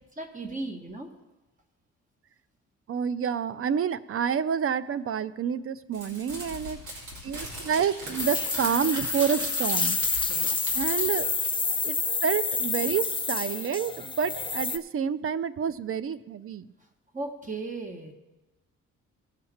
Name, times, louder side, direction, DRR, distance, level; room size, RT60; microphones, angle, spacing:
voice 1, 0.2-1.1 6.1-6.4 10.3-10.6 17.1-18.1, right 2 dB, 25° right, 4 dB, 1.6 m, -36 dB
voice 2, 2.9-6.8 7.2-10.0 10.7-11.3 11.8-12.0 12.2-16.7, right 8 dB, 50° right, 16 dB, 0.5 m, -28 dB
Crumpling crinkling, 5.9-11.9, right 1 dB, 75° right, 3.0 m, -39 dB
sound 1, 8.2-14.8, left 4 dB, 15° left, 0.6 m, -28 dB
17.5 x 5.9 x 4.3 m, 1.1 s
cardioid pair, 70°, 29 cm